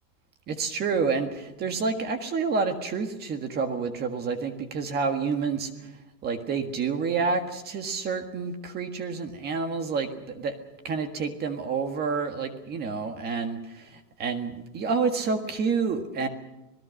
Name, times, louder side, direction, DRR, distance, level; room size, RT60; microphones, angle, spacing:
voice 1, 0.5-5.7 6.2-10.5 10.8-13.9 14.2-16.3, right 5 dB, 20° right, 7 dB, 1.7 m, -28 dB
26.5 x 18.5 x 6.5 m, 0.98 s
supercardioid pair, 160°, 49 cm